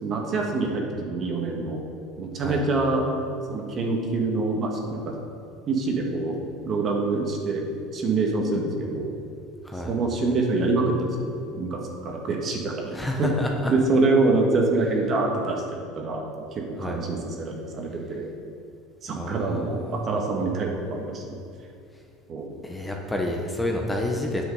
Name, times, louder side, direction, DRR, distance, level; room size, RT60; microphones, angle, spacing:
voice 1, 0.0-1.8 2.2-3.0 3.5-5.2 5.7-6.4 6.6-7.6 7.9-9.1 9.9-13.3 13.7-18.3 19.0-21.2 22.3-22.6, right 3 dB, 40° right, 1 dB, 1.6 m, -25 dB
voice 2, 12.9-13.7 16.8-17.0 19.2-20.0 22.6-24.4, left 1 dB, 10° left, 1 dB, 1.0 m, -29 dB
8.4 x 6.1 x 5.4 m, 2.4 s
supercardioid pair, 100°, 0 cm